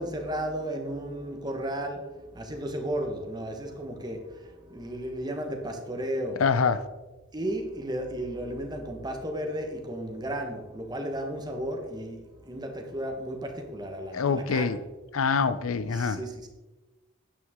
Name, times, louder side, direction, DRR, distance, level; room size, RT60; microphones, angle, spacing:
voice 1, 0.0-6.4 7.3-14.8 15.9-16.5, right 1 dB, 20° right, 3 dB, 1.2 m, -34 dB
voice 2, 6.4-6.8 14.1-14.8 15.1-16.2, left 5 dB, 80° left, 14 dB, 0.5 m, -25 dB
9.4 x 8.7 x 3.6 m, 1.2 s
head